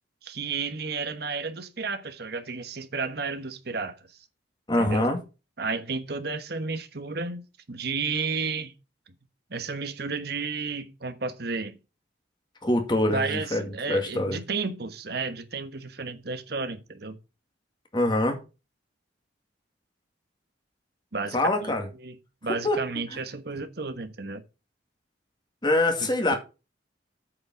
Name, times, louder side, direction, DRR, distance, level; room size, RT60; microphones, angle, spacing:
voice 1, 0.2-4.0 4.8-5.1 5.6-8.7 9.5-11.8 13.1-17.2 21.1-21.4 21.6-21.7 22.0-22.2 22.4-24.4, right 4 dB, 60° right, 1.2 m, -32 dB
voice 2, 4.7-5.2 12.6-14.4 17.9-18.4 21.3-21.9 22.6-22.9 23.1-23.2 25.6-26.4, left 1 dB, 25° left, 2.1 m, -24 dB
8.7 x 5.2 x 5.9 m
head